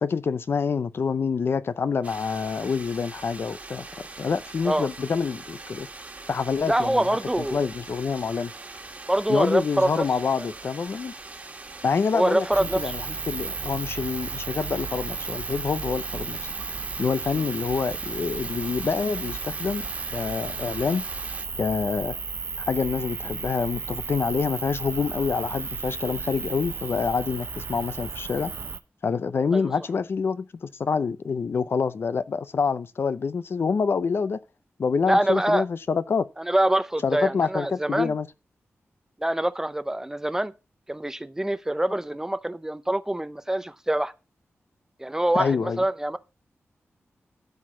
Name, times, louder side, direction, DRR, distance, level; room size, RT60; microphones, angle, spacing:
voice 1, 0.0-3.9 4.2-5.9 6.3-7.2 7.5-8.5 9.3-11.1 11.8-16.4 17.0-19.9 20.1-21.0 21.6-22.1 22.7-28.5 29.0-34.4 34.8-36.3 37.0-38.3 45.3-45.8, left 5 dB, 55° left, 0.6 m, -26 dB
sound 1, 2.0-21.5, right 3 dB, 30° right, 1.6 m, -42 dB
voice 2, 6.7-7.6 9.1-10.0 12.1-12.9 17.4-17.5 29.5-29.7 35.1-35.6 36.4-38.1 39.2-40.5 40.9-44.1 45.0-46.2, right 1 dB, 10° right, 0.5 m, -25 dB
sound 2, 12.5-28.8, right 5 dB, 50° right, 0.8 m, -34 dB
13.0 x 4.7 x 6.1 m
wide cardioid pair, 155°, 5 cm